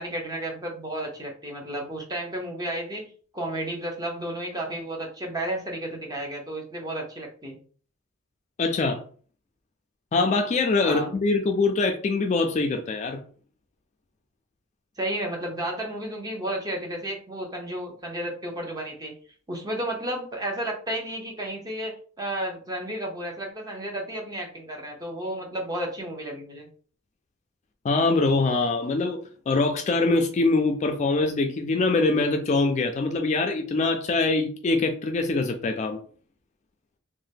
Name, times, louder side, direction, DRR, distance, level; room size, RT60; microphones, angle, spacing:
voice 1, 0.0-7.6 10.8-11.1 15.0-19.1 19.5-26.7, right 1 dB, 20° right, 0.6 m, -32 dB
voice 2, 8.6-9.0 10.1-13.2 27.8-29.2 29.5-36.0, left 3 dB, 35° left, 0.3 m, -23 dB
2.7 x 2.1 x 3.4 m
head